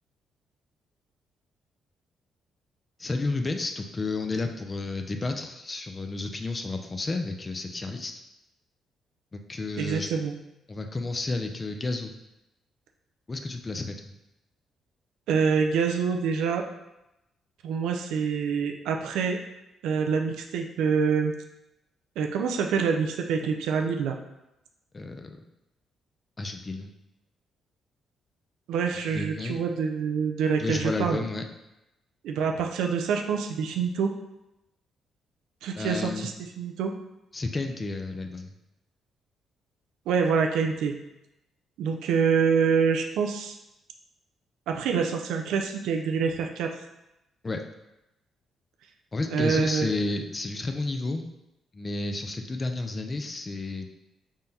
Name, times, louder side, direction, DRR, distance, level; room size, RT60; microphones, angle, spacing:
voice 1, 3.0-8.1 9.3-10.1 10.7-12.1 13.3-13.9 24.9-25.4 26.4-26.9 29.1-29.6 30.6-31.4 35.8-36.3 37.3-38.5 47.4-47.6 49.1-51.2 51.7-53.9, left 3 dB, 35° left, 5 dB, 0.5 m, -31 dB
voice 2, 9.8-10.3 15.3-16.6 17.6-19.4 19.8-21.3 22.2-24.2 28.7-31.2 32.2-34.1 35.6-36.9 40.1-40.9 41.8-43.6 44.7-46.7 49.3-49.9, right 6 dB, 80° right, 3 dB, 0.4 m, -26 dB
3.6 x 2.2 x 4.0 m, 0.92 s
supercardioid pair, 55°, 0 cm